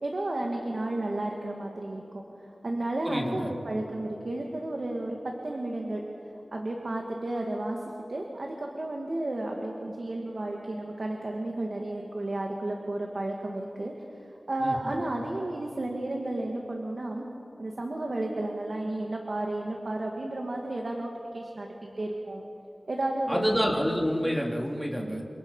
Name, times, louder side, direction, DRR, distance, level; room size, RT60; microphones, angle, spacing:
voice 1, 0.0-2.2 2.6-6.0 6.5-7.8 8.1-13.9 14.5-17.3 17.6-22.4 22.9-23.8 25.0-25.3, right 1 dB, 55° right, 0 dB, 2.3 m, -32 dB
voice 2, 3.1-3.5 14.6-14.9 23.3-25.2, equal, ahead, 0 dB, 3.4 m, -28 dB
29.5 x 26.5 x 5.7 m, 2.8 s
wide cardioid pair, 85°, 0 cm